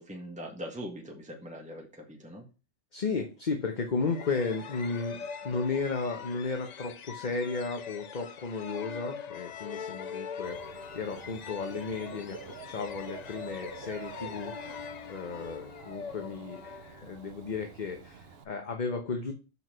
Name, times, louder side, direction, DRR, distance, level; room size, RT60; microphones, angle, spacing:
voice 1, 0.0-2.4, equal, 5° right, 1 dB, 1.5 m, -42 dB
voice 2, 2.9-14.8 15.1-19.3, left 4 dB, 40° left, 4 dB, 1.0 m, -34 dB
sound 1, 4.0-17.5, left 6 dB, 65° left, 0.4 m, -43 dB
Dog / Bird, 10.4-18.4, right 6 dB, 55° right, 0.9 m, -48 dB
5.6 x 4.6 x 6.1 m, 0.32 s
omnidirectional pair, 1.3 m